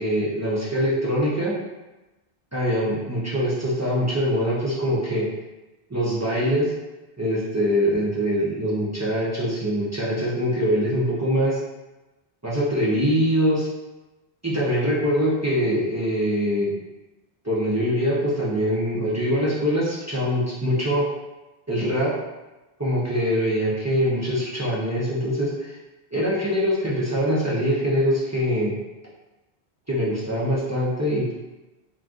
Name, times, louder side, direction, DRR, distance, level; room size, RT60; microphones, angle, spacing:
voice 1, 0.0-1.5 2.5-5.3 5.9-6.7 7.2-11.6 12.4-13.7 14.4-16.7 17.4-21.0 21.7-22.1 22.8-25.8 26.1-28.8 29.9-31.3, equal, 25° right, -8 dB, 0.3 m, -23 dB
2.5 x 2.3 x 3.5 m, 1.1 s
omnidirectional pair, 1.1 m